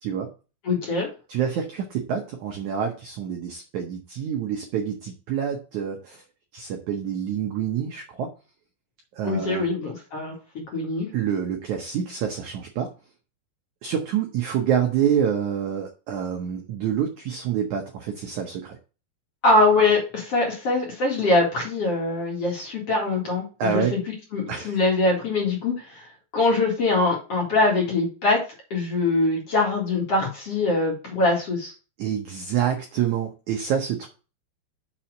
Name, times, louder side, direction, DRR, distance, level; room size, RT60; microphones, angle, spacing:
voice 1, 0.6-1.1 9.2-10.3 10.7-11.1 19.4-24.0 24.3-26.1 26.3-28.4 28.7-31.7, left 2 dB, 45° left, -1 dB, 2.5 m, -23 dB
voice 2, 1.3-6.2 6.5-8.3 9.1-9.6 11.1-12.9 13.8-18.8 23.6-23.9 24.5-24.8 32.0-34.1, right 8 dB, 85° right, 3 dB, 1.6 m, -27 dB
6.2 x 4.4 x 6.3 m, 0.34 s
omnidirectional pair, 4.7 m